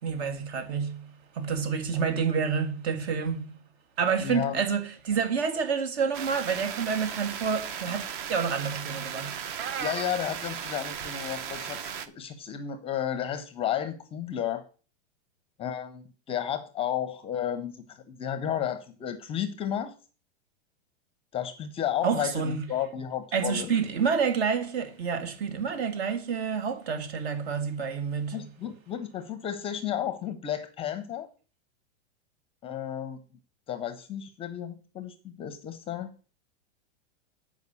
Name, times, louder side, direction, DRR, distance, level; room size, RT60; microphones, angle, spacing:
voice 1, 0.0-3.6 4.0-8.0 8.3-9.4 22.0-22.7 23.3-28.5, right 6 dB, 65° right, 1.9 m, -28 dB
voice 2, 4.2-4.6 9.8-14.6 15.6-19.9 21.3-23.7 28.3-31.3 32.6-33.2 33.7-36.1, left 10 dB, 15° left, 0.6 m, -32 dB
sound 1, 6.1-12.1, right 8 dB, 45° right, 0.9 m, -36 dB
8.2 x 5.0 x 6.8 m
supercardioid pair, 150°, 35 cm